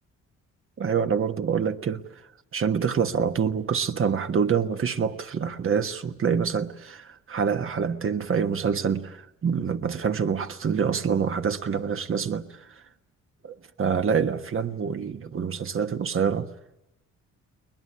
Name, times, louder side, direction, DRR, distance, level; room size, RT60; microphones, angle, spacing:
voice 1, 0.8-2.0 2.5-12.8 13.4-16.5, right 6 dB, 45° right, 1.4 m, -26 dB
21.5 x 20.5 x 9.9 m
cardioid pair, 90°, 30 cm